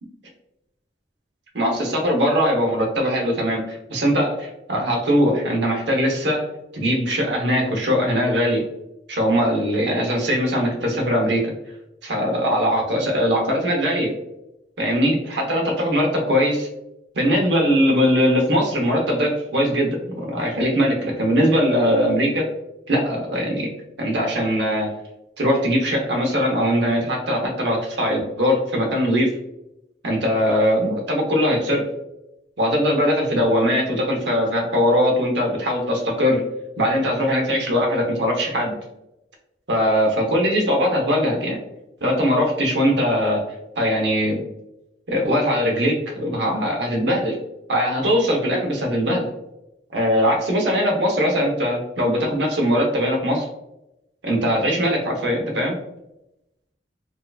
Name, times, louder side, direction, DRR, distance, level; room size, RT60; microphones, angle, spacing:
voice 1, 1.5-6.4 6.7-8.6 9.1-11.4 12.0-14.1 14.8-16.7 17.1-22.5 22.9-23.7 24.0-24.9 25.4-29.3 30.0-31.9 32.6-36.4 36.8-38.8 39.7-41.6 42.0-43.4 43.8-44.4 45.1-47.4 47.7-49.3 49.9-53.5 54.2-55.7, equal, 80° right, 1 dB, 0.9 m, -21 dB
4.4 x 2.5 x 2.3 m, 0.87 s
head